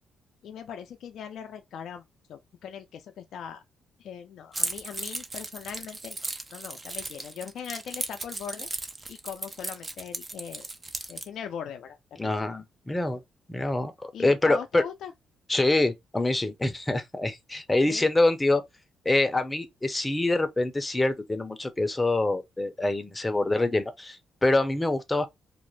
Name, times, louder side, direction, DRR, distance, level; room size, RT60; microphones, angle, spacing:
voice 1, 0.4-3.6 4.0-6.2 6.5-8.7 9.1-10.7 11.1-12.0 12.2-12.3 14.1-15.1 17.9-18.1, left 8 dB, 75° left, 0.4 m, -40 dB
Keys jangling, 4.5-11.3, right 2 dB, 25° right, 0.5 m, -36 dB
voice 2, 12.2-13.2 13.5-14.8 15.5-18.6 19.0-25.3, left 2 dB, 15° left, 0.6 m, -25 dB
2.5 x 2.0 x 3.1 m
cardioid pair, 80°, 0 cm